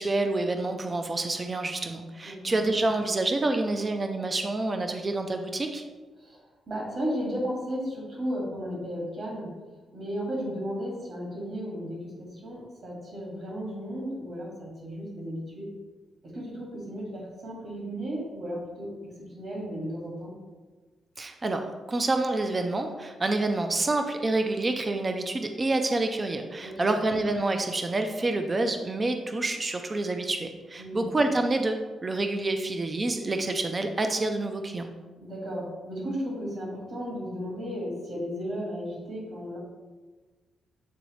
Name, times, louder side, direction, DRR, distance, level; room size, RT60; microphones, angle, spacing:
voice 1, 0.0-5.8 21.2-34.9, right 2 dB, 20° right, 6 dB, 0.4 m, -28 dB
voice 2, 2.2-2.6 6.2-6.4 6.7-9.5 9.9-15.7 16.2-18.9 19.3-20.3 26.6-26.9 30.8-31.1 35.2-39.6, equal, 50° right, -3 dB, 1.8 m, -34 dB
8.4 x 3.9 x 3.1 m, 1.3 s
wide cardioid pair, 155°, 0 cm